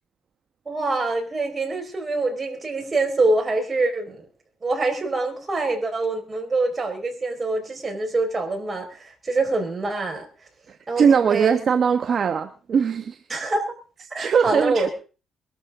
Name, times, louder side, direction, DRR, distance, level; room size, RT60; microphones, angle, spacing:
voice 1, 0.6-4.3 4.6-10.3 10.9-11.5 13.3-13.6 14.1-14.9, right 3 dB, 30° right, 4 dB, 5.1 m, -25 dB
voice 2, 10.7-13.2 14.2-14.9, right 6 dB, 55° right, 7 dB, 1.2 m, -21 dB
22.0 x 13.0 x 3.8 m, 0.37 s
cardioid pair, 90°, 0 cm